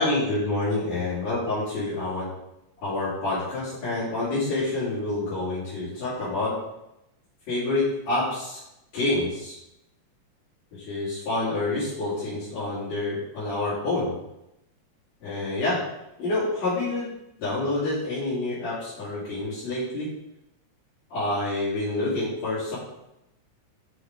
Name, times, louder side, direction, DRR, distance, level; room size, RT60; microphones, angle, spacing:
voice 1, 0.0-2.3 2.8-6.5 7.5-8.6 8.9-9.6 10.7-14.2 15.2-15.8 16.2-17.1 17.4-20.1 21.1-22.8, left 2 dB, 60° left, -13 dB, 4.6 m, -27 dB
7.7 x 6.3 x 4.8 m, 0.88 s
omnidirectional pair, 3.4 m